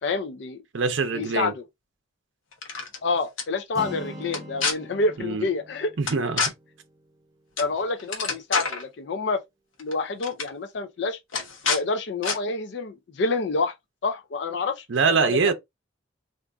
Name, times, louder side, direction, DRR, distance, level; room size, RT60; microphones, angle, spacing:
voice 1, 0.0-0.6 1.1-1.6 3.0-5.9 7.6-9.4 9.8-11.2 11.7-13.7 14.0-15.5, left 3 dB, 55° left, 0.4 m, -28 dB
voice 2, 0.7-1.5 5.2-5.5 6.0-6.4 14.9-15.5, right 4 dB, 65° right, 0.6 m, -23 dB
sound 1, 2.5-3.0 3.4-3.5 4.3-4.7 6.1-6.5 7.6-7.7 8.0-8.8 9.8-9.9 10.2-10.5 11.3-11.8 12.2-12.4, left 4 dB, 75° left, 0.9 m, -27 dB
Acoustic guitar, 3.7-7.7, equal, 20° right, 0.5 m, -42 dB
2.5 x 2.4 x 3.3 m
head